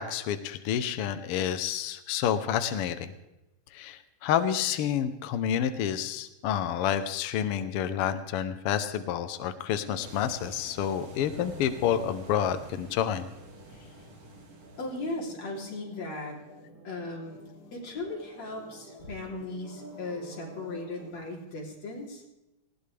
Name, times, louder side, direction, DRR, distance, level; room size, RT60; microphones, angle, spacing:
voice 1, 0.0-3.1 3.7-13.3, left 9 dB, 75° left, 10 dB, 1.3 m, -29 dB
sound 1, 10.0-15.3, right 1 dB, 55° right, 3.2 m, -48 dB
sound 2, 10.7-21.1, right 2 dB, 70° right, 7.7 m, -51 dB
voice 2, 14.8-16.4 16.8-17.4 17.7-22.2, left 2 dB, 55° left, -1 dB, 4.6 m, -37 dB
19.5 x 16.5 x 3.4 m, 0.95 s
omnidirectional pair, 3.6 m